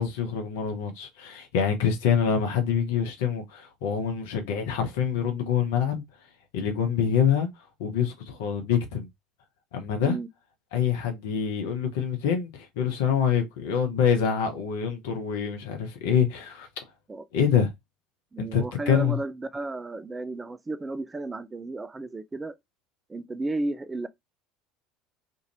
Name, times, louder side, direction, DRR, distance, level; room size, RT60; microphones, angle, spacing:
voice 1, 0.0-6.0 6.5-7.5 7.8-9.1 9.7-10.2 10.7-16.7 17.3-17.7 18.4-19.2, left 7 dB, 65° left, 0.8 m, -26 dB
voice 2, 18.3-22.6 23.1-24.1, right 2 dB, 20° right, 0.3 m, -33 dB
2.7 x 2.5 x 2.9 m
figure-of-eight pair, 65°, 0 cm